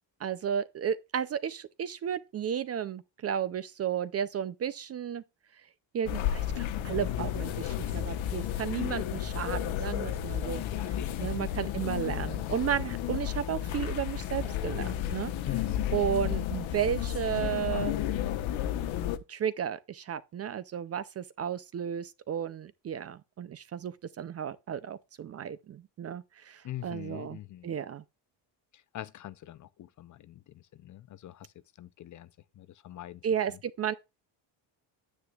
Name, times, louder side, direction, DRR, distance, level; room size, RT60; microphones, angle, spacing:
voice 1, 0.2-5.2 5.9-10.6 11.2-15.3 15.9-18.0 19.3-28.0 33.2-33.9, right 9 dB, 35° right, 0.4 m, -33 dB
sound 1, 6.1-19.2, left 11 dB, 80° left, 1.1 m, -32 dB
voice 2, 10.6-12.5 15.5-16.0 26.6-27.7 28.7-31.5 31.8-32.3 32.6-33.2, left 13 dB, 40° left, 0.5 m, -43 dB
9.7 x 9.6 x 2.3 m
cardioid pair, 175°, 46 cm